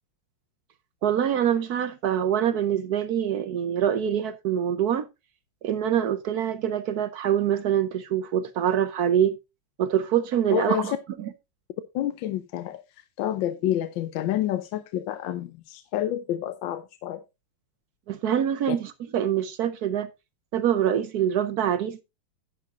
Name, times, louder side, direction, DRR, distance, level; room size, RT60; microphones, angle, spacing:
voice 1, 1.0-5.1 5.6-9.4 9.8-10.9 11.2-11.3 18.1-20.1 20.5-22.0, right 9 dB, 65° right, 1.0 m, -25 dB
voice 2, 10.5-11.0 11.9-12.8 13.2-17.2 18.7-18.8, left 12 dB, 75° left, 1.4 m, -28 dB
10.0 x 9.6 x 2.4 m
omnidirectional pair, 2.1 m